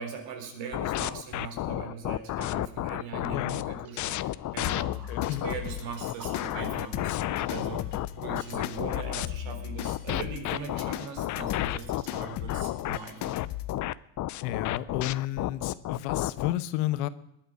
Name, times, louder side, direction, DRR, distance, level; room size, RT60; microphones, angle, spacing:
voice 1, 0.0-4.9 5.3-13.4, right 5 dB, 65° right, 4.2 m, -40 dB
sound 1, 0.7-5.5 6.0-9.3 9.9-16.6, left 15 dB, 40° left, 0.5 m, -31 dB
sound 2, 3.8-9.4, right 4 dB, 45° right, 3.4 m, -50 dB
sound 3, 4.6-13.8, left 12 dB, 55° left, 1.0 m, -38 dB
voice 2, 4.7-5.5 14.4-17.1, left 14 dB, 80° left, 1.1 m, -32 dB
19.5 x 11.0 x 5.3 m
cardioid pair, 125°, 48 cm